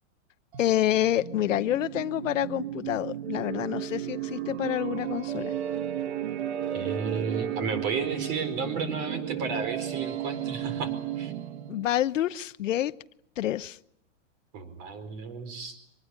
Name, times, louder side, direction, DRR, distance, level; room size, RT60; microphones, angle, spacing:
sound 1, 0.5-11.9, right 11 dB, 60° right, 1.6 m, -34 dB
voice 1, 0.6-5.5 11.7-12.9 13.4-13.8, left 12 dB, 80° left, 1.0 m, -28 dB
voice 2, 6.7-11.3 14.5-15.8, right 4 dB, 35° right, 4.7 m, -33 dB
24.5 x 20.0 x 9.9 m
supercardioid pair, 165°, 37 cm